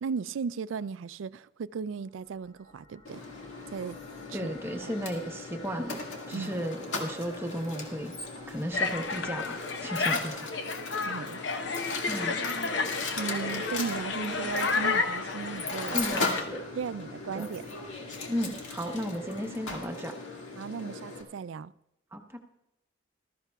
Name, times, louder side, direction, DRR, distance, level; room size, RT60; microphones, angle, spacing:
voice 1, 0.0-3.2 3.7-4.0 4.3-4.4 6.3-6.6 11.0-11.4 13.2-16.0 16.8-17.7 20.6-21.7, right 6 dB, 90° right, 0.4 m, -36 dB
sound 1, 1.9-19.7, left 2 dB, 35° left, 2.2 m, -54 dB
Mechanisms, 3.1-21.2, left 3 dB, 90° left, 2.1 m, -38 dB
voice 2, 4.3-6.0 6.3-8.2 8.5-10.5 12.1-12.4 15.9-16.6 17.3-17.5 18.3-20.2 22.1-22.4, equal, 10° right, 0.9 m, -34 dB
sound 2, 8.7-16.4, left 4 dB, 70° left, 0.8 m, -31 dB
19.5 x 13.5 x 2.3 m
head